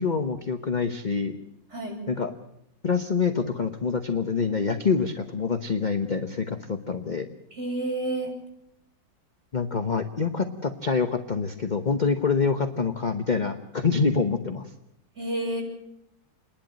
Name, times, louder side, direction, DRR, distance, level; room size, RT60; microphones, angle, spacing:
voice 1, 0.0-1.4 2.1-2.3 2.8-7.3 9.5-14.7, left 5 dB, 35° left, 6 dB, 0.8 m, -26 dB
voice 2, 7.5-8.3 15.2-15.6, right 1 dB, 30° right, -1 dB, 7.3 m, -29 dB
29.0 x 11.5 x 9.1 m, 0.80 s
omnidirectional pair, 2.3 m